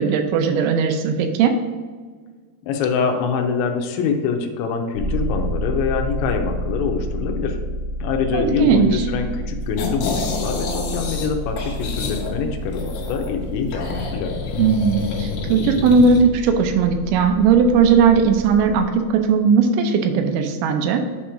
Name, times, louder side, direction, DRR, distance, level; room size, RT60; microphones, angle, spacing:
voice 1, 0.0-1.6 8.3-9.1 14.6-21.0, right 5 dB, 80° right, 6 dB, 2.8 m, -17 dB
voice 2, 2.7-7.6 8.0-14.3, left 5 dB, 80° left, 4 dB, 2.8 m, -24 dB
sound 1, 4.9-18.8, equal, 65° right, 1.1 m, -30 dB
sound 2, 9.8-11.3 11.6-13.3 13.7-16.2, left 4 dB, 60° left, 3.1 m, -28 dB
8.6 x 3.0 x 4.9 m, 1.5 s
omnidirectional pair, 5.7 m